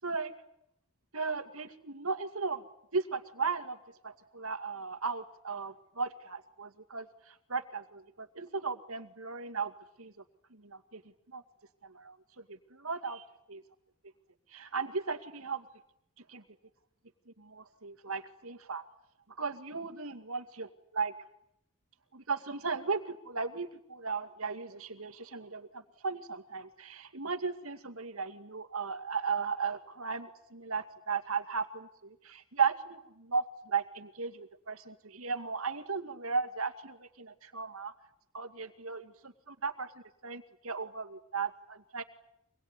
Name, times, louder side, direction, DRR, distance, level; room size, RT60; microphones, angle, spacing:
voice 1, 1.1-2.6 2.9-3.8 4.0-9.7 10.0-10.1 10.5-11.0 11.3-11.4 11.8-12.2 12.7-13.6 14.5-15.6 16.3-16.4 17.4-18.8 19.4-21.1 22.1-37.9 38.3-39.9 40.2-42.0, right 5 dB, 80° right, 9 dB, 2.3 m, -36 dB
26.0 x 20.5 x 9.8 m, 0.77 s
head